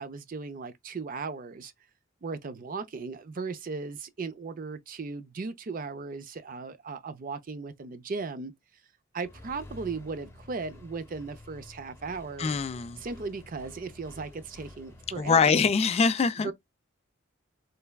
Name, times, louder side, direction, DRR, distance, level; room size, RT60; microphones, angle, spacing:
voice 1, 0.0-1.7 2.2-8.5 9.1-12.5 13.0-15.5 16.4-16.5, right 4 dB, 45° right, 0.5 m, -37 dB
Accelerating revving vroom, 9.2-15.5, left 1 dB, 15° left, 0.8 m, -50 dB
voice 2, 12.4-13.0 15.2-16.5, left 5 dB, 30° left, 0.3 m, -24 dB
3.3 x 3.3 x 2.2 m
head